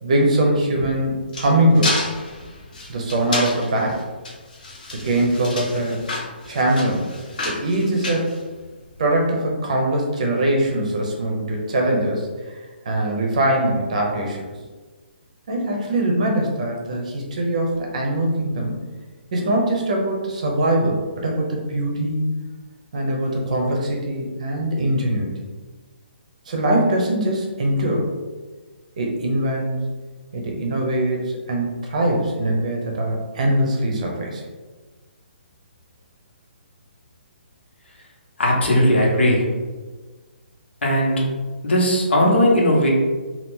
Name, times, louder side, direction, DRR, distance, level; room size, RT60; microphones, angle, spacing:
voice 1, 0.0-2.0 2.9-4.0 4.9-6.0 6.5-7.1 7.4-8.3 9.0-12.6 12.9-14.4 15.5-18.7 19.3-22.2 22.9-25.3 26.5-28.1 29.0-29.8 30.3-34.4, right 1 dB, 40° right, 0 dB, 0.6 m, -22 dB
sound 1, 0.7-9.0, left 2 dB, 45° left, 0.7 m, -30 dB
voice 2, 38.4-39.5 40.8-41.2 41.6-42.9, equal, 80° left, -3 dB, 1.1 m, -17 dB
2.8 x 2.3 x 3.6 m, 1.3 s
hypercardioid pair, 175°, 6 cm